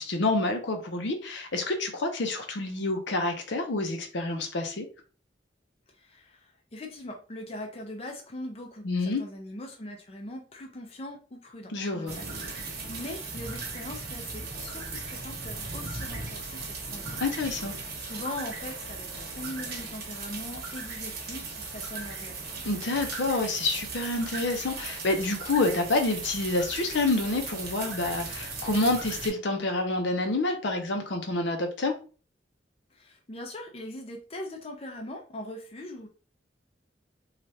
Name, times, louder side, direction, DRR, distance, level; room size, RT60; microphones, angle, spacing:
voice 1, 0.0-4.9 8.8-9.2 11.7-12.2 17.2-17.7 22.6-31.9, left 2 dB, 75° left, 0.6 m, -28 dB
voice 2, 5.9-17.1 18.0-22.5 32.9-36.1, left 1 dB, 30° left, 0.5 m, -41 dB
sound 1, 12.1-29.3, right 4 dB, 55° right, 0.9 m, -37 dB
3.2 x 2.4 x 2.7 m
head